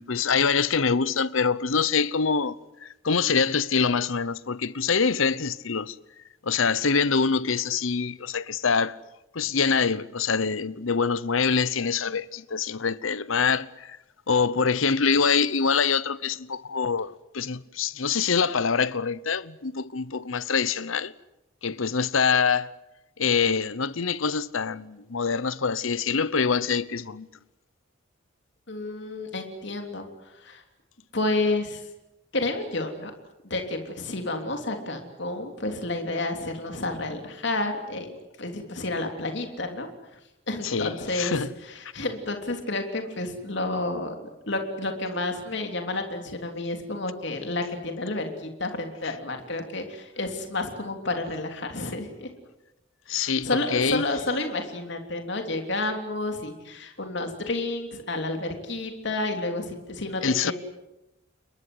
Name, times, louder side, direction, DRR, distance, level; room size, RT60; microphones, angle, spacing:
voice 1, 0.0-6.0 6.4-9.0 9.3-14.0 14.3-21.1 21.6-22.7 23.2-27.3 40.6-41.5 53.1-54.0 60.2-60.5, left 5 dB, 75° left, 0.9 m, -25 dB
voice 2, 28.7-30.1 30.4-30.6 31.1-31.8 32.3-33.1 33.4-38.1 38.4-39.9 40.5-44.1 44.5-52.3 53.1-60.5, left 2 dB, 60° left, 3.2 m, -30 dB
28.5 x 22.5 x 8.0 m
head